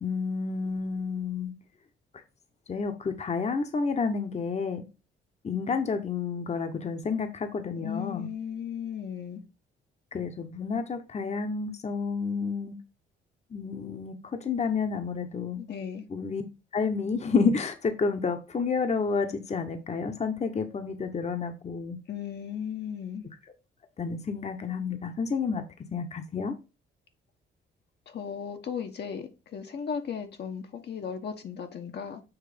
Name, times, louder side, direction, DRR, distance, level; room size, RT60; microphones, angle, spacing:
voice 1, 0.0-1.5 2.7-4.8 5.4-8.3 10.1-12.7 13.5-14.2 14.4-15.6 16.1-16.4 16.7-22.0 24.0-25.6 25.9-26.5, left 5 dB, 35° left, 1.0 m, -30 dB
voice 2, 7.7-9.4 15.6-16.1 22.1-23.3 28.1-32.2, left 7 dB, 55° left, 1.1 m, -36 dB
7.2 x 3.0 x 5.1 m
cardioid pair, 90°, 20 cm